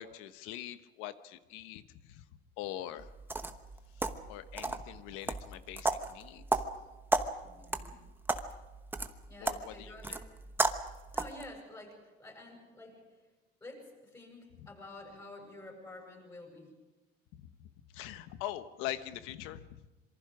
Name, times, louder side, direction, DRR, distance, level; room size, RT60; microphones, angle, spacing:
voice 1, 0.0-2.2 2.6-3.1 4.0-6.6 9.4-10.2 17.3-19.8, left 12 dB, 85° left, 11 dB, 1.2 m, -43 dB
sound 1, 3.0-11.5, right 2 dB, 10° right, 1.1 m, -35 dB
voice 2, 7.4-8.0 9.3-10.3 11.1-13.0 13.6-16.7, left 2 dB, 20° left, -1 dB, 7.5 m, -50 dB
26.5 x 24.0 x 5.0 m, 1.1 s
cardioid pair, 135°, 21 cm